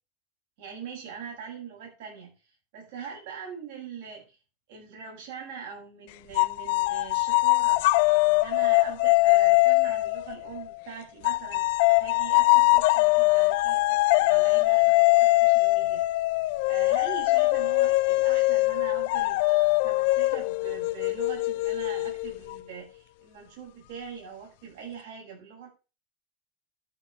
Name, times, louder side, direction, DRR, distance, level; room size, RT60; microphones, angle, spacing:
voice 1, 0.6-2.3 2.7-4.4 4.7-7.8 8.3-11.6 12.0-16.0 16.7-19.4 19.8-25.7, right 6 dB, 70° right, -2 dB, 7.9 m, -42 dB
sound 1, 6.3-10.7 11.2-22.6, left 22 dB, 70° left, 0.5 m, -22 dB
12.5 x 5.6 x 7.6 m, 0.32 s
hypercardioid pair, 95°, 0 cm